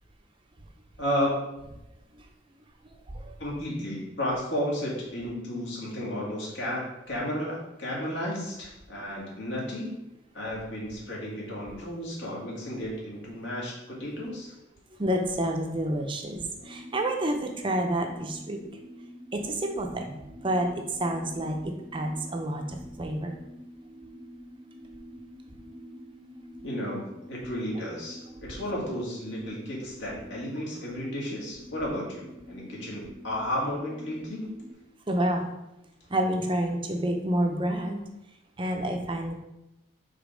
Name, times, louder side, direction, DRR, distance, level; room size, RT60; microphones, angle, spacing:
voice 1, 1.0-1.5 3.4-10.0 10.3-14.5 26.6-34.5, equal, 75° left, -4 dB, 2.1 m, -33 dB
voice 2, 15.0-18.6 19.3-20.2 20.4-23.4 35.1-35.5 36.1-38.0 38.6-39.3, right 1 dB, 25° right, 3 dB, 0.5 m, -29 dB
sound 1, 16.6-34.7, equal, 30° left, 1.4 m, -47 dB
5.1 x 3.9 x 5.0 m, 0.92 s
head